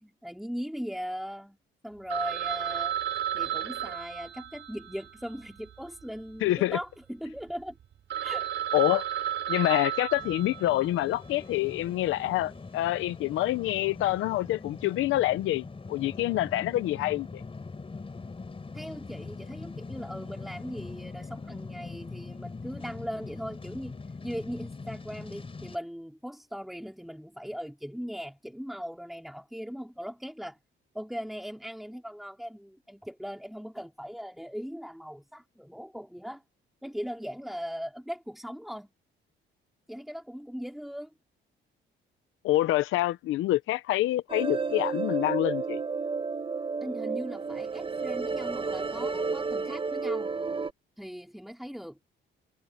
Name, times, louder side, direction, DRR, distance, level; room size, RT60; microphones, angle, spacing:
voice 1, 0.0-1.6 1.8-2.9 3.3-7.8 8.2-8.5 18.7-24.0 24.2-30.6 30.9-36.4 36.8-38.9 39.9-41.1 46.8-50.3 51.0-52.0, equal, ahead, 3.6 m, -39 dB
Telephone, 2.1-6.4 6.7-6.8 7.4-7.5 7.8-7.9 8.1-11.1, right 10 dB, 70° right, 5.4 m, -33 dB
voice 2, 6.4-6.8 8.7-9.1 9.5-17.4 42.4-45.8, left 15 dB, 85° left, 0.8 m, -27 dB
sound 1, 10.2-25.8, left 4 dB, 30° left, 3.9 m, -42 dB
sound 2, 44.3-50.7, right 4 dB, 25° right, 1.1 m, -31 dB
cardioid pair, 90°, 20 cm